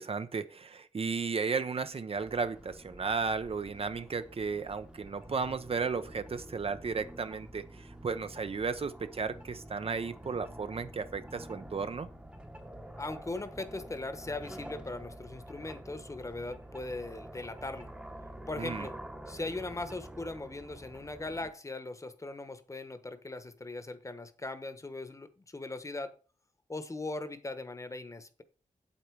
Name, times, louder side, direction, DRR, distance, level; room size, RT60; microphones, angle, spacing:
voice 1, 0.0-12.1 18.6-18.9, right 5 dB, 45° right, 0.7 m, -34 dB
sound 1, 2.1-21.5, right 1 dB, 10° right, 1.0 m, -48 dB
voice 2, 13.0-17.9 18.5-18.9 19.3-26.1 26.7-28.4, left 2 dB, 25° left, 1.1 m, -39 dB
8.7 x 8.4 x 4.7 m
wide cardioid pair, 140°, 13 cm